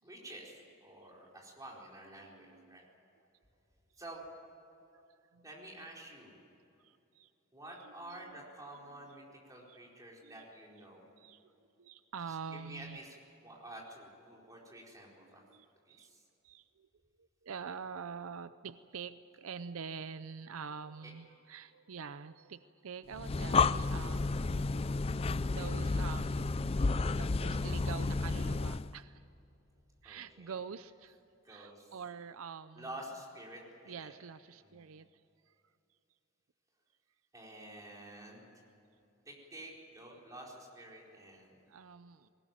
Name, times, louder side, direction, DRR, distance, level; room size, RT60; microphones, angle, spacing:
voice 1, 0.0-2.8 4.0-4.2 5.4-6.4 7.5-11.1 12.2-15.4 15.9-16.2 21.0-21.1 30.0-30.6 31.0-31.1 31.4-31.9 32.7-34.1 34.6-34.8 37.3-38.6 39.2-41.6, right 1 dB, 15° right, -3 dB, 4.4 m, -50 dB
voice 2, 2.0-2.8 4.0-4.2 5.1-5.9 6.8-7.3 7.6-8.5 8.9-9.3 9.7-9.8 10.2-10.5 10.7-10.9 11.2-11.5 11.8-13.0 15.2-16.1 16.4-16.9 17.2-29.2 30.0-31.2 31.5-35.6 40.8-40.9 41.7-42.3, right 6 dB, 75° right, 13 dB, 0.5 m, -47 dB
Breathing, 23.1-28.9, left 3 dB, 25° left, 0.4 m, -31 dB
21.0 x 19.0 x 9.0 m, 2.9 s
head